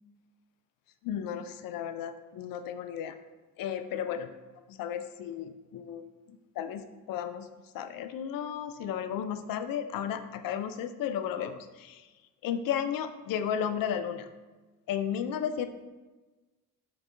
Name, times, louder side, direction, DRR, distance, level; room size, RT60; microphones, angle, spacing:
voice 1, 1.0-3.2 3.6-4.3 4.7-7.5 7.7-12.1 12.4-14.3 14.9-15.7, left 9 dB, 50° left, 10 dB, 0.5 m, -34 dB
3.8 x 3.5 x 3.3 m, 1.2 s
hypercardioid pair, 50°, 45 cm